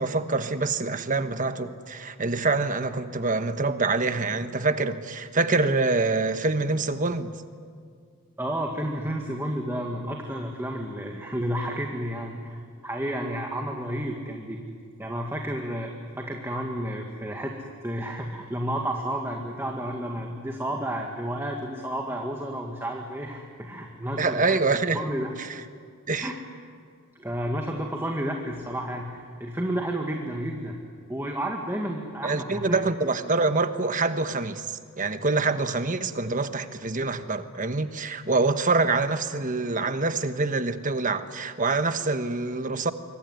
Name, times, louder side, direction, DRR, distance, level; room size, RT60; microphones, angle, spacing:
voice 1, 0.0-7.4 24.2-25.0 25.4-25.5 26.1-26.3 32.2-42.9, right 3 dB, 40° right, 1.3 m, -25 dB
voice 2, 8.4-14.6 15.0-15.9 16.2-24.6 24.9-25.3 26.2-26.3 27.2-30.8 31.1-32.8, right 1 dB, 10° right, 2.0 m, -31 dB
26.0 x 23.0 x 9.6 m
head